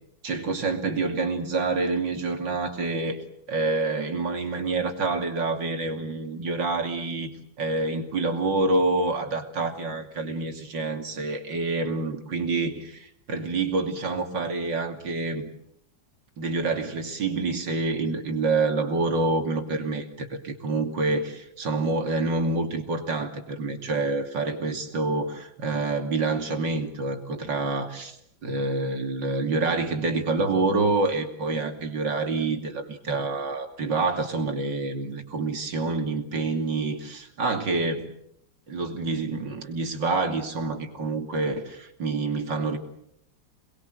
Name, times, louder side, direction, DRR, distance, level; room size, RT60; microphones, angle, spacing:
voice 1, 0.2-3.2 3.5-7.3 7.6-15.5 16.4-28.2 28.4-38.1 38.7-42.8, right 3 dB, 70° right, 5 dB, 3.3 m, -27 dB
28.0 x 21.0 x 7.8 m, 0.73 s
omnidirectional pair, 2.0 m